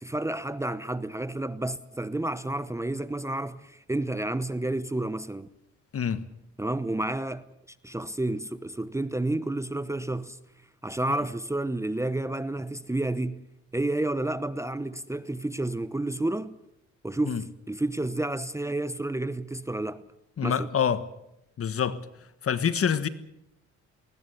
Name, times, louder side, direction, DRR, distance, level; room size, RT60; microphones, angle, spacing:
voice 1, 0.0-5.5 6.6-7.4 7.8-10.4 10.8-13.4 13.7-16.5 17.0-20.0 20.4-20.7, right 2 dB, 10° right, 0.8 m, -30 dB
voice 2, 20.4-21.0 21.6-22.0 22.4-23.1, left 7 dB, 50° left, 1.5 m, -26 dB
20.5 x 19.5 x 8.4 m
cardioid pair, 90°, 30 cm